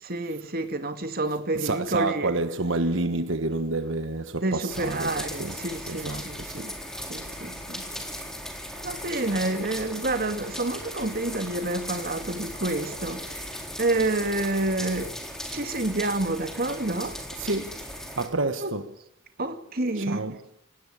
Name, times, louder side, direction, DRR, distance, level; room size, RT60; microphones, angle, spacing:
voice 1, 0.0-2.3 4.4-6.8 7.1-8.2 8.7-15.2 15.5-17.2 18.6-18.7 19.4-20.3, right 2 dB, 50° right, 2.2 m, -29 dB
voice 2, 1.5-5.6 5.9-6.7 17.4-17.8 18.2-18.9 20.0-20.4, right 2 dB, 80° right, 1.3 m, -29 dB
sound 1, 4.7-18.3, equal, 5° left, 3.9 m, -37 dB
19.5 x 18.0 x 10.0 m
head